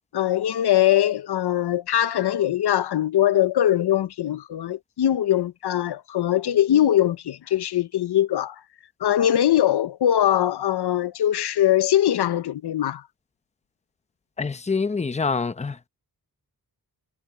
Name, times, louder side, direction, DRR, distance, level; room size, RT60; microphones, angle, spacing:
voice 1, 0.1-8.6 9.0-13.0, left 11 dB, 85° left, 0.7 m, -21 dB
voice 2, 14.4-15.9, left 4 dB, 15° left, 0.7 m, -26 dB
wide cardioid pair, 150°, 39 cm